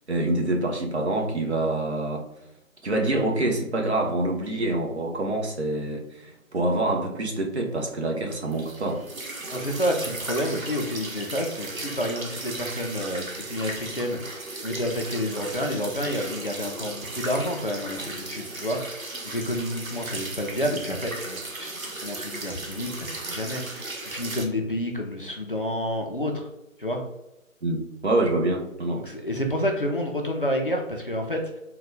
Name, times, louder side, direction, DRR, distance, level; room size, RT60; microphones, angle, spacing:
voice 1, 0.1-2.2 2.8-9.0 27.6-29.0, right 2 dB, 55° right, 1 dB, 0.9 m, -26 dB
sound 1, 8.5-24.5, right 2 dB, 80° right, 1.1 m, -36 dB
voice 2, 9.5-21.7 22.0-26.5 26.8-27.0 29.0-31.5, equal, 40° left, 1 dB, 0.5 m, -29 dB
3.8 x 2.3 x 3.3 m, 0.90 s
figure-of-eight pair, 160°, 41 cm